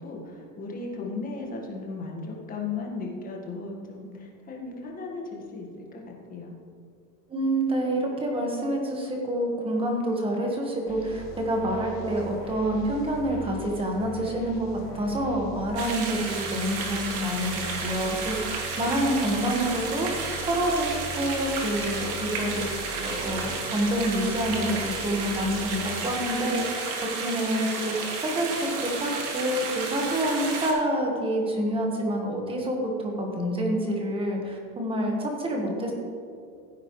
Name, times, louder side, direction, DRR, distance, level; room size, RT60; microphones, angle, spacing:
voice 1, 0.0-6.5, left 3 dB, 15° left, -1 dB, 1.6 m, -36 dB
voice 2, 7.3-20.1 20.5-20.9 21.2-22.7 23.0-26.8 27.2-35.9, right 1 dB, 10° right, 0 dB, 1.4 m, -27 dB
sound 1, 10.9-26.4, equal, 45° left, 1.8 m, -41 dB
sound 2, 15.8-30.7, right 4 dB, 60° right, 2.5 m, -32 dB
15.5 x 8.8 x 3.2 m, 2.4 s
supercardioid pair, 155°, 47 cm